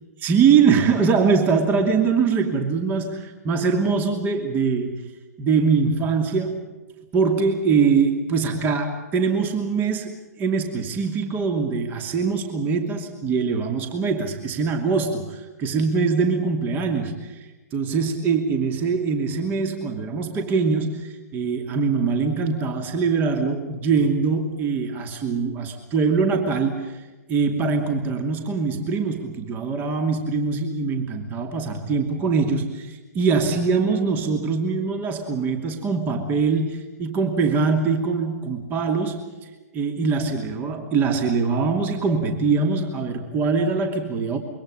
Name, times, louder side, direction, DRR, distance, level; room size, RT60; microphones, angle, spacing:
voice 1, 0.2-5.1 5.4-6.7 7.1-27.0 27.3-39.3 39.7-44.4, right 5 dB, 20° right, 5 dB, 2.7 m, -23 dB
26.5 x 23.5 x 5.4 m, 1.2 s
figure-of-eight pair, 125°, 9 cm